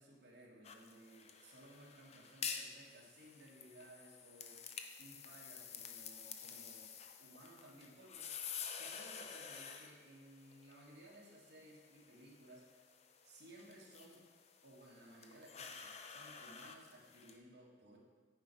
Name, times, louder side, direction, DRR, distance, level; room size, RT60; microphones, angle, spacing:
voice 1, 0.0-6.9 7.2-8.3 8.7-12.6 13.2-14.2 14.6-18.0, right 1 dB, 60° right, -4 dB, 1.8 m, -59 dB
sound 1, 0.6-17.4, left 6 dB, 35° left, 0.5 m, -50 dB
9.7 x 4.7 x 4.5 m, 1.5 s
head